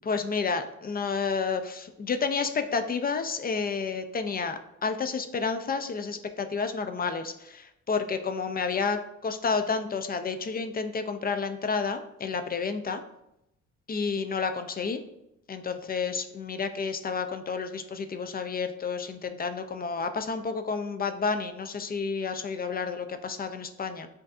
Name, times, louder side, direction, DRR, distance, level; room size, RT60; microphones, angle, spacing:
voice 1, 0.0-13.0 13.9-15.0 15.5-24.1, left 5 dB, 30° left, 8 dB, 0.4 m, -30 dB
7.6 x 2.6 x 2.5 m, 0.83 s
cardioid pair, 90°, 30 cm